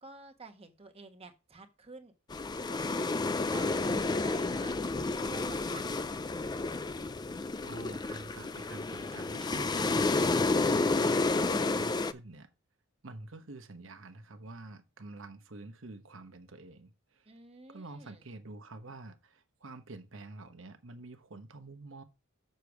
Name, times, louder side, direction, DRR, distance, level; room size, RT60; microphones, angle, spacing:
voice 1, 0.0-2.1 2.6-3.1 3.5-5.9 17.3-18.2, right 3 dB, 25° right, 1.2 m, -50 dB
sound 1, 2.3-12.1, left 3 dB, 20° left, 0.3 m, -30 dB
voice 2, 7.6-12.5 13.0-17.3 17.7-22.0, right 2 dB, 65° right, 1.1 m, -47 dB
6.7 x 6.7 x 4.7 m
head